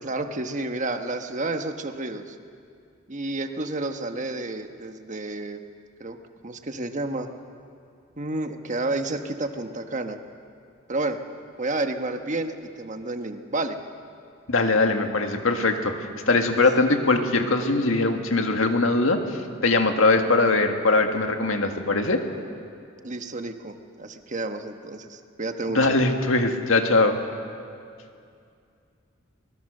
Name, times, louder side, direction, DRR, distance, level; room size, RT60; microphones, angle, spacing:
voice 1, 0.0-2.4 3.1-5.6 6.0-6.2 6.4-7.3 8.2-10.2 10.9-11.2 11.6-13.8 16.5-16.6 23.0-25.9, right 2 dB, 40° right, 6 dB, 1.2 m, -30 dB
voice 2, 14.5-19.2 19.6-22.2 25.7-27.2, left 3 dB, 80° left, 5 dB, 1.9 m, -21 dB
24.0 x 20.5 x 6.7 m, 2.4 s
head